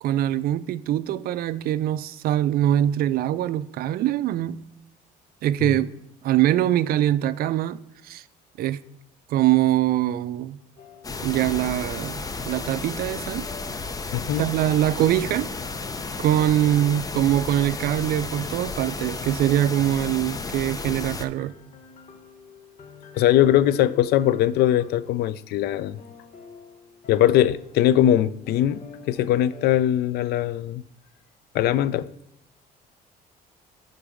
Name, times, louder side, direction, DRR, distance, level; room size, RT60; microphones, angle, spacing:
voice 1, 0.0-4.6 5.4-5.9 6.2-8.2 8.6-8.8 9.3-10.6 11.2-13.5 14.2-15.5 16.2-21.5, right 12 dB, 65° right, 0.4 m, -23 dB
sound 1, 10.8-29.7, left 4 dB, 50° left, 1.2 m, -48 dB
sound 2, 11.0-21.3, left 3 dB, 20° left, 0.6 m, -33 dB
voice 2, 14.1-14.5 23.2-26.0 27.1-30.8 31.5-32.1, left 12 dB, 70° left, 0.4 m, -21 dB
9.8 x 3.9 x 5.1 m
cardioid pair, 110°, 17 cm